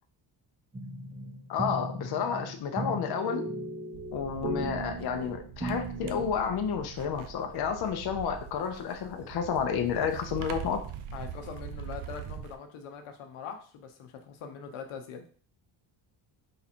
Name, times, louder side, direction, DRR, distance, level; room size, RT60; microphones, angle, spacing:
sound 1, 0.7-6.3, right 1 dB, 15° right, 0.6 m, -37 dB
voice 1, 1.5-3.4 4.1-10.8, left 7 dB, 50° left, 6 dB, 0.6 m, -31 dB
sound 2, 3.9-12.5, right 8 dB, 80° right, 0.6 m, -42 dB
voice 2, 11.1-15.2, left 6 dB, 85° left, 5 dB, 0.9 m, -42 dB
3.7 x 2.9 x 4.2 m, 0.43 s
cardioid pair, 125°, 48 cm